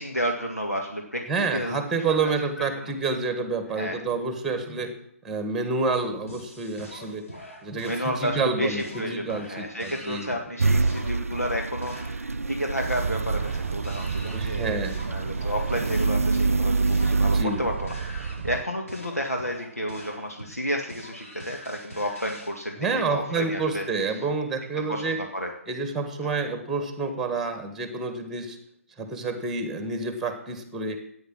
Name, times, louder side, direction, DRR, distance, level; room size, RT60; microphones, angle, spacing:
voice 1, 0.0-1.8 2.2-2.3 2.8-2.9 3.8-4.0 7.9-24.2 24.9-25.5 26.2-26.3, equal, 90° left, 1 dB, 1.8 m, -31 dB
voice 2, 1.3-5.0 5.2-7.3 7.6-10.3 14.3-15.2 17.2-17.6 22.8-25.2 25.7-28.6 29.0-31.0, right 4 dB, 5° right, 8 dB, 1.5 m, -28 dB
sound 1, 6.3-22.5, left 1 dB, 70° left, 4.4 m, -44 dB
sound 2, 10.6-17.4, right 3 dB, 70° right, 0.5 m, -26 dB
sound 3, 12.8-18.6, right 6 dB, 50° right, 0.8 m, -32 dB
13.5 x 9.4 x 6.2 m, 0.73 s
figure-of-eight pair, 140°, 8 cm